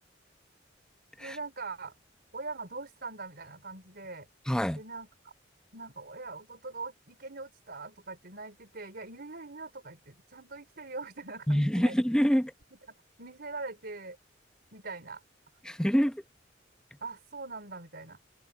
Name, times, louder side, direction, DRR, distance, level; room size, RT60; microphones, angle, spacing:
voice 1, 1.2-1.9 2.3-4.3 4.7-5.3 5.7-12.0 12.9-14.2 14.7-15.2 17.0-18.2, right 3 dB, 55° right, 4.5 m, -42 dB
voice 2, 4.5-4.8 11.5-12.5 15.7-16.2, equal, 5° left, 0.8 m, -26 dB
head